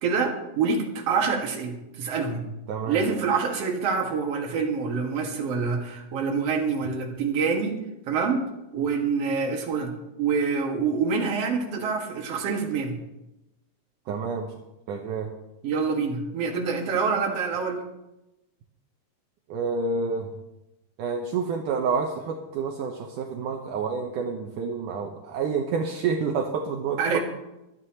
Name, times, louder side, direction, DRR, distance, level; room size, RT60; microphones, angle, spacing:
voice 1, 0.0-2.4 2.9-7.8 8.1-8.5 8.7-9.9 10.2-13.0 15.6-17.8 27.0-27.2, right 5 dB, 50° right, 0 dB, 2.6 m, -26 dB
voice 2, 2.7-3.0 14.1-14.5 14.9-15.3 19.5-20.3 21.0-27.2, right 5 dB, 70° right, 1 dB, 2.3 m, -28 dB
24.0 x 9.6 x 3.0 m, 0.94 s
omnidirectional pair, 4.0 m